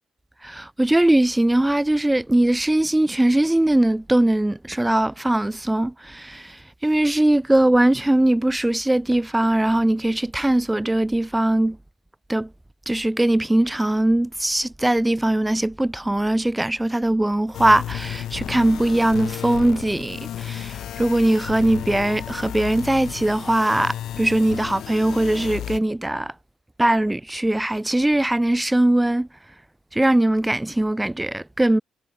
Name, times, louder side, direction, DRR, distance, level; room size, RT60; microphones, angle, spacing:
voice 1, 0.4-11.8 12.3-12.5 12.9-26.3 26.8-29.3 29.9-31.8, right 1 dB, 10° right, 0.9 m, -20 dB
sound 1, 17.5-25.8, left 11 dB, 75° left, 0.8 m, -33 dB
cardioid pair, 90°, 0 cm